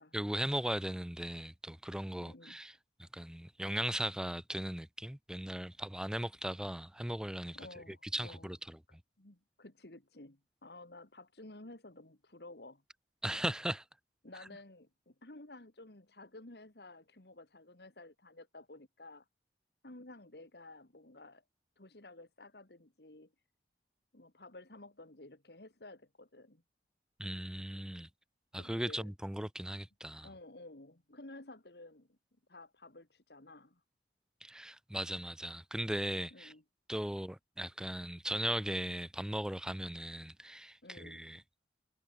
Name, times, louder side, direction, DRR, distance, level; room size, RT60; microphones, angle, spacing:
voice 1, 0.1-2.7 3.0-7.6 8.1-8.8 13.2-13.8 27.2-28.1 28.5-30.3 34.4-36.5 36.9-41.4, right 1 dB, 5° right, 0.5 m, -38 dB
voice 2, 2.2-2.6 7.5-8.5 9.2-12.8 14.2-19.3 19.8-21.4 21.8-23.3 24.1-26.6 28.5-29.1 30.2-32.2 32.5-33.8 36.3-36.6 40.8-41.2, left 2 dB, 65° left, 2.2 m, -53 dB
head